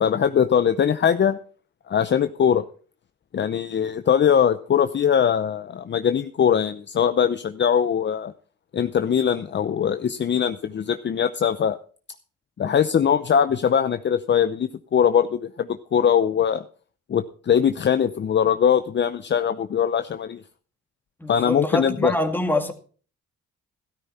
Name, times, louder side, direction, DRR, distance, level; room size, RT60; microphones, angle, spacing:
voice 1, 0.0-1.4 1.9-2.6 3.3-8.3 8.7-11.8 12.6-16.6 17.1-20.4 21.3-22.1, left 8 dB, 35° left, 0.7 m, -21 dB
voice 2, 21.2-22.7, left 1 dB, 5° left, 2.2 m, -25 dB
13.5 x 12.5 x 4.2 m
cardioid pair, 90°, 30 cm